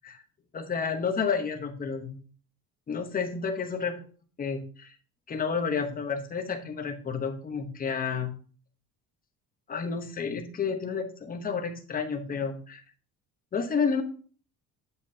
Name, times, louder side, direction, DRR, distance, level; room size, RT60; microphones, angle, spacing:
voice 1, 0.5-2.2 2.9-3.9 4.4-4.9 5.3-8.3 9.7-12.8 13.5-14.0, left 5 dB, 25° left, 5 dB, 1.0 m, -30 dB
8.1 x 7.6 x 2.8 m, 0.42 s
cardioid pair, 160°, 36 cm